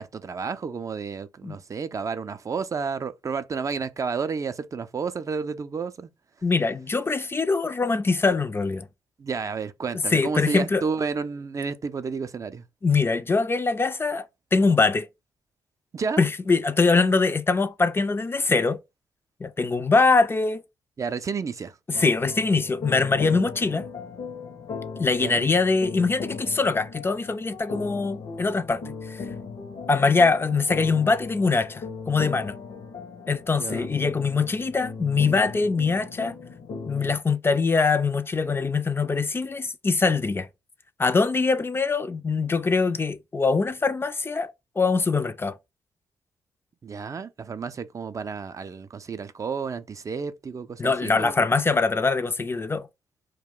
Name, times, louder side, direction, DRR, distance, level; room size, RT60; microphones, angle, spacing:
voice 1, 0.0-6.1 9.2-12.6 15.9-16.2 21.0-21.7 25.2-25.5 33.6-33.9 46.8-51.3, right 5 dB, 40° right, 0.4 m, -31 dB
voice 2, 6.4-8.9 10.1-10.9 12.8-15.1 16.2-18.8 19.4-20.6 21.9-23.9 25.0-29.2 29.9-32.6 33.3-36.4 36.9-40.5 41.0-45.6 50.8-52.9, left 4 dB, 30° left, 0.4 m, -23 dB
sound 1, 21.9-37.1, left 5 dB, 60° left, 0.7 m, -38 dB
2.2 x 2.1 x 3.6 m
hypercardioid pair, 45°, 8 cm